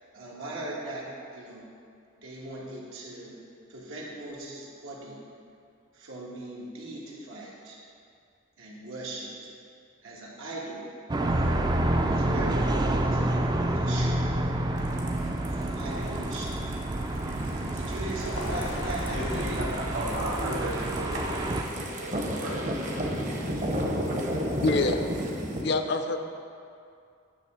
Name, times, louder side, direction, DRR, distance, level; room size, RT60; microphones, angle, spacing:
voice 1, 0.1-1.0 1.3-1.6 2.2-3.4 3.7-5.2 5.9-7.8 8.6-9.5 10.0-10.8 11.3-11.5 12.1-14.5 15.2-16.7 17.4-19.6 19.9-21.2, right 1 dB, 90° right, -4 dB, 1.5 m, -40 dB
sound 1, 11.1-21.6, right 1 dB, 20° right, 0.3 m, -28 dB
Vehicle, 14.8-23.6, left 1 dB, 80° left, 1.0 m, -41 dB
sound 2, 14.8-25.6, equal, 40° right, 0.8 m, -34 dB
voice 2, 19.1-19.7 19.9-23.6 24.1-24.3, equal, 70° right, -4 dB, 1.9 m, -36 dB
voice 3, 24.6-25.0 25.6-26.2, left 3 dB, 55° left, 7 dB, 0.4 m, -25 dB
9.4 x 3.2 x 6.2 m, 2.4 s
head